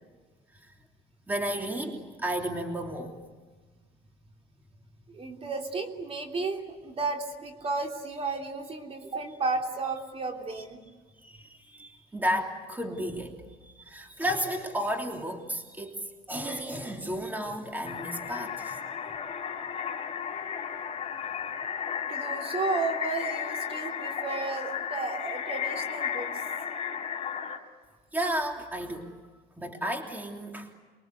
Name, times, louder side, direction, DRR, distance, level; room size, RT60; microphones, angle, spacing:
voice 1, 1.3-3.2 11.2-18.8 28.1-29.1 29.6-30.7, equal, 10° right, 3 dB, 3.1 m, -33 dB
voice 2, 5.1-10.8 22.1-26.3, right 3 dB, 35° right, 3 dB, 3.3 m, -33 dB
sound 1, 17.8-27.6, left 7 dB, 35° left, 3.8 m, -34 dB
28.5 x 23.0 x 8.2 m, 1.4 s
cardioid pair, 110°, 17 cm